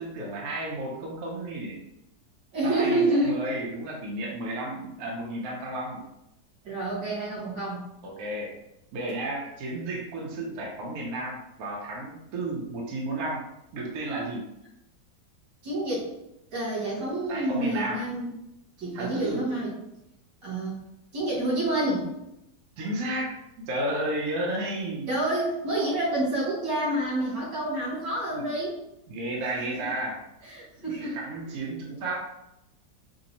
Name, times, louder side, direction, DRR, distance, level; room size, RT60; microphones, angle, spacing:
voice 1, 0.0-1.8 2.6-6.1 8.0-8.5 8.9-13.4 13.7-14.5 17.3-18.0 18.9-19.4 22.8-23.4 23.7-25.1 28.4-28.5 29.1-30.2 30.9-32.3, right 1 dB, 65° right, -3 dB, 1.1 m, -32 dB
voice 2, 2.5-3.4 6.6-7.8 15.6-16.1 16.5-18.3 18.8-19.7 20.4-20.8 21.1-22.1 25.1-28.8 29.8-29.9 30.4-31.2, right 1 dB, 80° right, -6 dB, 2.3 m, -28 dB
5.1 x 2.0 x 2.8 m, 0.86 s
omnidirectional pair, 1.9 m